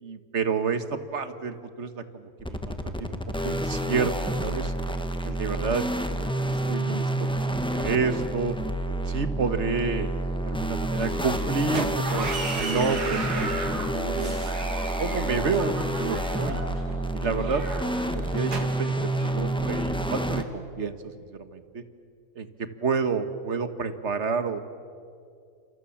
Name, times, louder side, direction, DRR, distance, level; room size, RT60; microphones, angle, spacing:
voice 1, 0.0-4.7 5.2-5.8 6.7-7.3 7.7-8.5 9.1-10.1 10.4-13.7 13.9-14.5 14.8-16.6 17.1-17.6 18.0-21.8 22.3-24.6, right 5 dB, 45° right, 10 dB, 1.6 m, -30 dB
sound 1, 2.4-20.4, right 1 dB, 5° left, 1.3 m, -29 dB
sound 2, 11.0-19.3, right 3 dB, 70° right, 3.0 m, -36 dB
29.5 x 27.5 x 7.3 m, 2.4 s
omnidirectional pair, 1.8 m